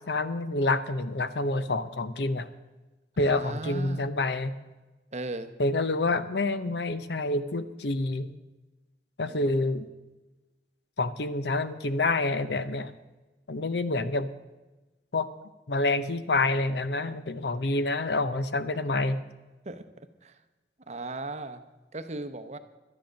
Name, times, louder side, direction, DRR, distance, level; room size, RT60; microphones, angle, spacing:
voice 1, 0.1-2.5 3.2-4.6 5.6-8.3 9.2-9.9 11.0-12.9 13.5-14.3 15.1-15.3 15.7-19.2, left 2 dB, 75° left, 12 dB, 0.7 m, -27 dB
voice 2, 3.2-4.1 5.1-5.5 9.2-9.7 19.6-20.4 20.9-21.6 21.9-22.6, right 2 dB, 40° right, 9 dB, 0.8 m, -38 dB
12.0 x 10.5 x 6.4 m, 1.1 s
head